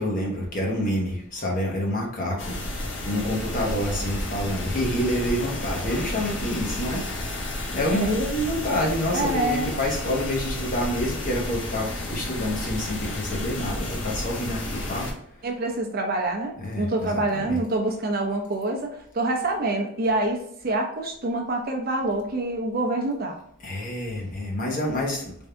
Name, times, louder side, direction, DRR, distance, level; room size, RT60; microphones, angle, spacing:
voice 1, 0.0-2.6 3.0-7.0 7.7-15.1 16.6-17.6 23.6-25.2, left 1 dB, 40° left, -1 dB, 0.9 m, -27 dB
sound 1, 2.4-15.1, left 1 dB, 65° left, 0.8 m, -31 dB
voice 2, 9.1-9.7 15.4-23.4, right 2 dB, 45° right, 2 dB, 0.6 m, -26 dB
3.5 x 2.7 x 3.3 m, 0.69 s
head